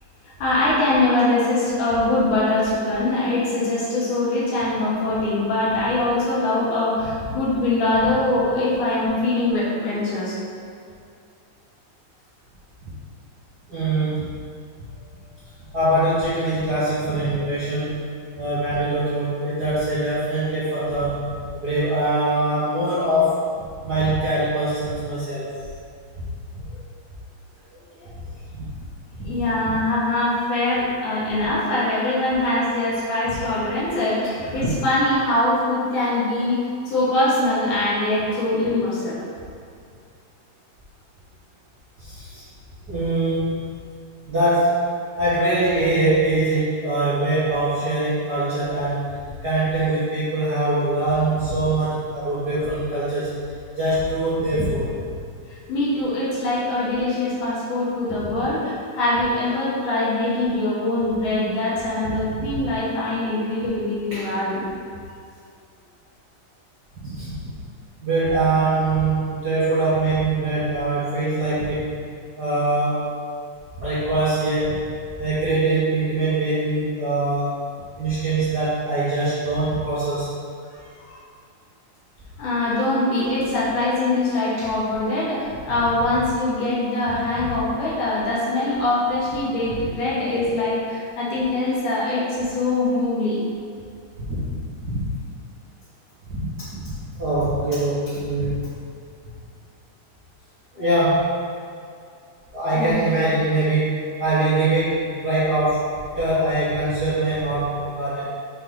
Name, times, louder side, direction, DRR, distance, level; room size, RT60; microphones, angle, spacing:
voice 1, 0.4-10.4 28.0-28.1 29.2-39.2 55.7-64.7 81.1-81.2 82.4-93.4 100.8-100.9 102.7-103.0, left 2 dB, 65° left, -7 dB, 2.8 m, -23 dB
voice 2, 13.7-14.4 15.7-18.0 18.4-25.7 28.0-28.1 28.5-28.9 29.2-29.7 34.6-34.7 42.0-42.4 42.9-43.6 44.3-49.1 49.4-53.4 53.7-55.1 58.1-58.4 59.6-59.9 64.1-64.3 67.0-67.5 68.0-71.9 72.4-73.1 73.8-74.8 75.2-77.5 78.0-80.3 84.6-84.7 87.3-87.4 89.8-89.9 94.2-94.6 94.8-95.1 96.3-98.7 100.7-101.4 102.5-108.2, right 2 dB, 75° right, -12 dB, 0.9 m, -23 dB
6.7 x 4.1 x 3.9 m, 2.3 s
omnidirectional pair, 4.1 m